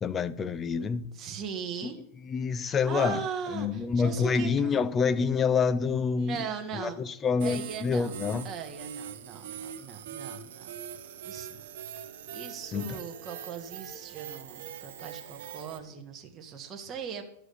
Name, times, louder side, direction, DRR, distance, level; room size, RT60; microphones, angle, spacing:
voice 1, 0.0-1.1 1.8-1.9 2.3-3.2 3.5-6.4 6.7-8.5 12.7-13.0, left 5 dB, 20° left, 0.5 m, -27 dB
voice 2, 1.1-2.0 2.6-4.7 6.1-7.0 7.4-8.2 8.4-10.7 11.2-11.6 12.3-17.2, right 6 dB, 25° right, 1.4 m, -39 dB
sound 1, 7.4-15.8, right 9 dB, 70° right, 1.4 m, -42 dB
11.5 x 4.8 x 6.6 m
supercardioid pair, 135°, 0 cm